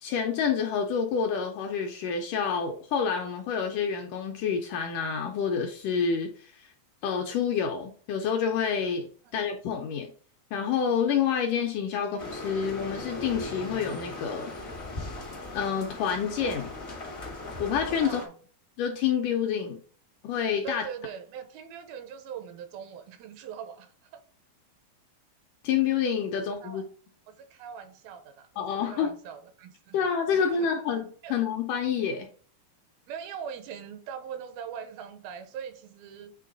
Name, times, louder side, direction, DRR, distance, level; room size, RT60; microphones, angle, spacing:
voice 1, 0.0-6.7 7.0-10.1 10.5-14.5 15.5-16.7 17.6-18.2 18.8-19.8 20.2-20.8 25.6-26.8 28.6-29.1 29.9-32.3, left 7 dB, 75° left, 2.0 m, -28 dB
sound 1, 12.2-18.3, left 2 dB, 60° left, 0.6 m, -38 dB
voice 2, 18.0-18.3 20.6-24.2 26.4-26.9 27.3-30.1 30.3-30.7 31.2-31.4 33.1-36.3, right 7 dB, 80° right, 2.5 m, -41 dB
8.4 x 3.1 x 3.9 m
omnidirectional pair, 4.3 m